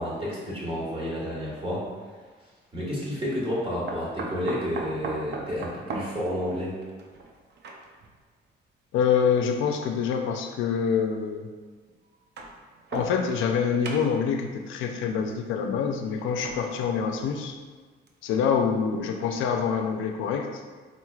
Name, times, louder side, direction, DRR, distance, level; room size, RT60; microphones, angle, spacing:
voice 1, 0.0-1.9 2.7-6.8, equal, 25° right, -6 dB, 1.4 m, -30 dB
sound 1, 1.4-1.6 3.9-8.1 9.1-9.2 10.4-10.5 12.1-13.6 13.8-14.4 16.2-17.6 18.1-18.2 18.5-18.6, right 3 dB, 60° right, 0.5 m, -38 dB
voice 2, 8.9-11.5 12.9-17.6 18.2-20.6, left 6 dB, 85° left, 4 dB, 0.4 m, -26 dB
4.0 x 3.1 x 2.3 m, 1.4 s
cardioid pair, 90°, 20 cm